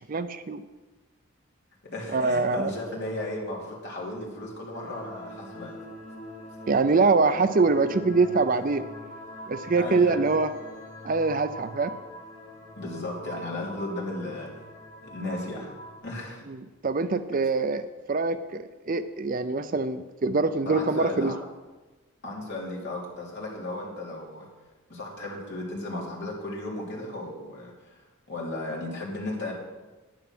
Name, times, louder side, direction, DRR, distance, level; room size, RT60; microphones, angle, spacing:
voice 1, 0.1-0.7 2.1-2.7 6.7-8.8 9.5-10.5 11.0-11.9 16.5-16.6 16.8-21.3, right 3 dB, 40° right, 12 dB, 0.4 m, -24 dB
voice 2, 1.8-5.8 9.8-10.2 12.8-14.5 15.0-15.7 16.0-16.4 20.6-21.3 22.2-24.5 24.9-29.5, left 2 dB, 50° left, -3 dB, 3.3 m, -35 dB
sound 1, 4.7-16.0, equal, 30° left, 4.4 m, -43 dB
10.5 x 10.0 x 6.1 m, 1.2 s
head